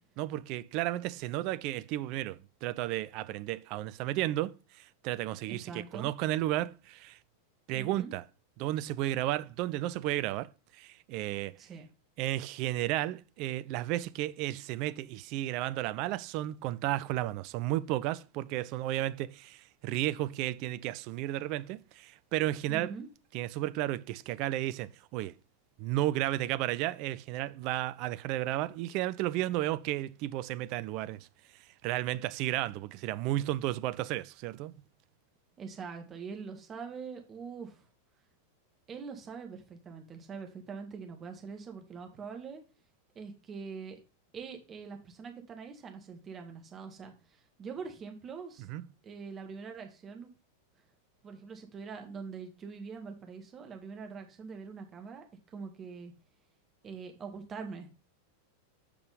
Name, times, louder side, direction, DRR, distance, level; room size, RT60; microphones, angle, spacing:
voice 1, 0.2-7.2 7.7-8.2 8.6-11.5 12.2-23.0 23.3-25.3 25.8-31.3 31.5-34.7 48.6-48.9, right 15 dB, 40° right, 0.4 m, -33 dB
voice 2, 5.5-6.1 7.7-8.1 11.6-11.9 22.7-23.1 35.6-37.8 38.9-42.6 43.2-44.0 44.3-47.1 47.6-48.7 49.0-50.3 51.2-56.1 56.8-57.9, right 5 dB, 25° right, 1.9 m, -43 dB
6.2 x 5.1 x 5.2 m
figure-of-eight pair, 90°, 0 cm